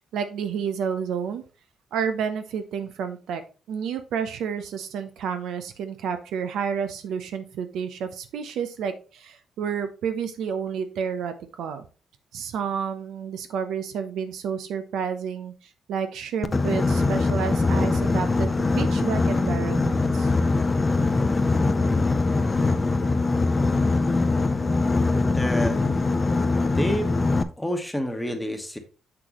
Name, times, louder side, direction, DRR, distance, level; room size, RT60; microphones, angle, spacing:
voice 1, 0.1-1.4 1.9-3.4 3.7-11.9 12.3-20.3, right 7 dB, 80° right, 9 dB, 0.8 m, -30 dB
Boat Water vehicle, 16.4-27.4, left 3 dB, 25° left, 0.6 m, -22 dB
voice 2, 25.1-25.8 26.7-27.1 27.6-28.8, equal, 5° left, 4 dB, 1.2 m, -29 dB
6.8 x 6.0 x 3.0 m, 0.33 s
cardioid pair, 90°, 0 cm